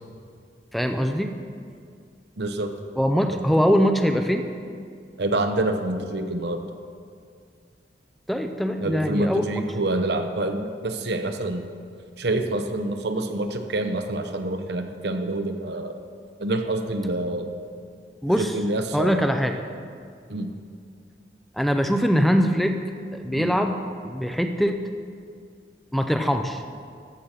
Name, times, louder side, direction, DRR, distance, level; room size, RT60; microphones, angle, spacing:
voice 1, 0.7-1.3 3.0-4.4 8.3-9.5 18.2-18.6 18.9-19.6 21.6-22.8 23.1-23.8 24.0-24.8 25.9-26.6, equal, ahead, 5 dB, 0.4 m, -22 dB
voice 2, 2.4-2.7 3.3-3.4 5.2-6.6 8.8-11.6 12.2-16.0 16.4-17.5 18.4-19.3 20.3-20.5 23.3-23.6, right 2 dB, 65° right, 6 dB, 0.8 m, -27 dB
13.5 x 5.7 x 6.6 m, 2.2 s
head